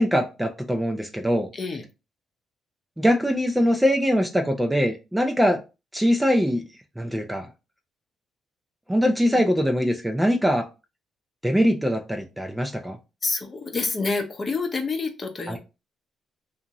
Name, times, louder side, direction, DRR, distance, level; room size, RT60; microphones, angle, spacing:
voice 1, 0.0-1.5 3.0-5.6 5.9-6.6 7.0-7.5 8.9-10.7 11.4-13.0 15.5-15.6, equal, 5° right, 4 dB, 0.4 m, -22 dB
voice 2, 1.5-1.8 9.2-9.4 13.2-15.6, left 4 dB, 35° left, 5 dB, 0.7 m, -28 dB
2.5 x 2.5 x 2.9 m, 0.28 s
cardioid pair, 90°, 0 cm